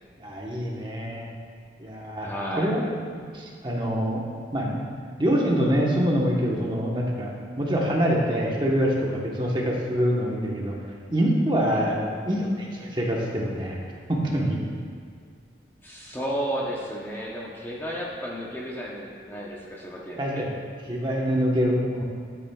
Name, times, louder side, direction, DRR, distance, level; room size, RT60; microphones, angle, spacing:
voice 1, 0.2-1.3 1.8-2.3 2.6-2.8 3.3-4.2 4.5-4.7 5.2-7.3 7.6-10.8 11.1-12.0 12.3-13.8 14.1-14.6 20.2-20.5 20.9-22.0, equal, 25° right, -2 dB, 1.1 m, -25 dB
voice 2, 2.2-2.7 11.7-11.9 15.8-20.4, equal, 10° left, -4 dB, 0.8 m, -33 dB
12.5 x 8.3 x 2.3 m, 2.2 s
head